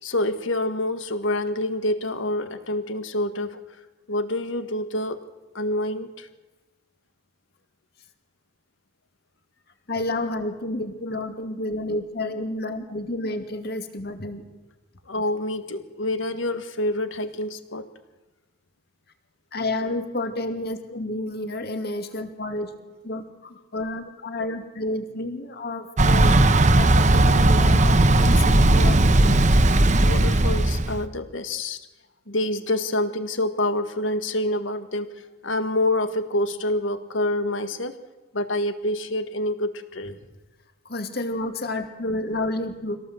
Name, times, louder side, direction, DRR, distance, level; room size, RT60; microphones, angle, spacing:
voice 1, 0.0-3.6 4.1-5.2 5.5-6.3 15.1-17.9 30.0-31.8 32.3-35.1 35.4-38.0 38.3-40.2, left 1 dB, 80° left, 9 dB, 1.8 m, -27 dB
voice 2, 9.9-14.5 19.5-22.7 23.0-29.4 40.8-43.0, left 2 dB, 55° left, 7 dB, 2.3 m, -30 dB
Thunder / Bicycle, 26.0-31.0, right 2 dB, 40° right, 1.0 m, -17 dB
25.0 x 17.5 x 7.9 m, 1.2 s
head